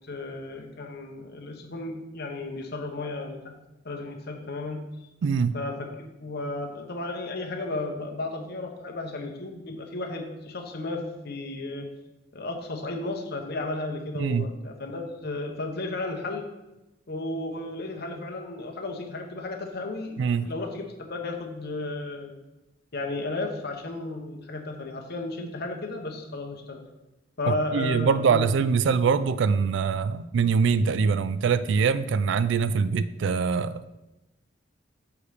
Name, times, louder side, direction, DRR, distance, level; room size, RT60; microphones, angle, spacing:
voice 1, 0.1-3.5 3.8-4.8 5.5-5.9 6.2-11.9 12.3-16.5 17.1-20.1 20.4-22.3 22.9-26.8 27.4-28.5, left 2 dB, 55° left, 2 dB, 1.0 m, -34 dB
voice 2, 5.2-5.5 14.1-14.5 20.2-20.5 27.5-33.9, right 5 dB, 65° right, 14 dB, 0.3 m, -23 dB
6.9 x 4.7 x 5.0 m, 1.0 s
head